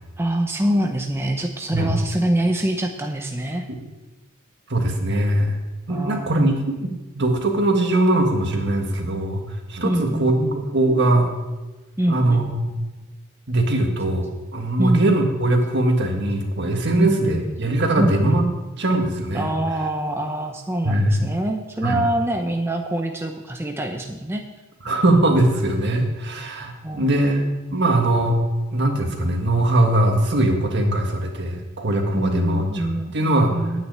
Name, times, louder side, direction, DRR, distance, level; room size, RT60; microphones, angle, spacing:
voice 1, 0.2-3.7 5.9-6.4 9.8-10.7 12.0-12.5 14.8-15.1 16.9-17.5 18.0-18.4 19.3-24.4 26.8-27.3 32.1-33.1 33.5-33.8, right 1 dB, 10° right, 3 dB, 0.7 m, -25 dB
voice 2, 4.7-9.4 9.7-10.4 10.7-11.3 12.1-12.7 13.5-18.4 18.8-19.5 20.8-21.2 21.8-22.0 24.8-28.4 28.7-33.6, right 1 dB, 55° right, 3 dB, 1.6 m, -21 dB
9.4 x 6.4 x 8.6 m, 1.1 s
head